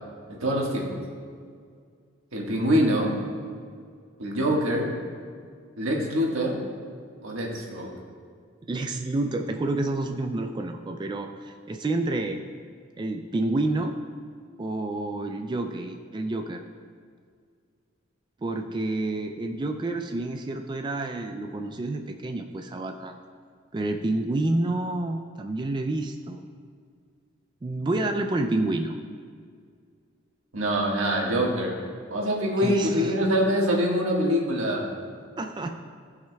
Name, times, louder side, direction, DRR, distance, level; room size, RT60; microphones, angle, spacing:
voice 1, 0.3-0.9 2.3-3.1 4.2-4.9 5.8-6.6 7.2-7.9 30.5-31.7 32.1-34.9, equal, 90° right, -2 dB, 1.5 m, -24 dB
voice 2, 8.7-12.4 13.0-14.0 14.6-16.6 18.4-23.2 23.7-26.4 27.6-29.0 32.6-33.1 35.4-35.8, right 2 dB, 20° right, 5 dB, 0.3 m, -29 dB
15.0 x 5.7 x 2.3 m, 2.1 s
head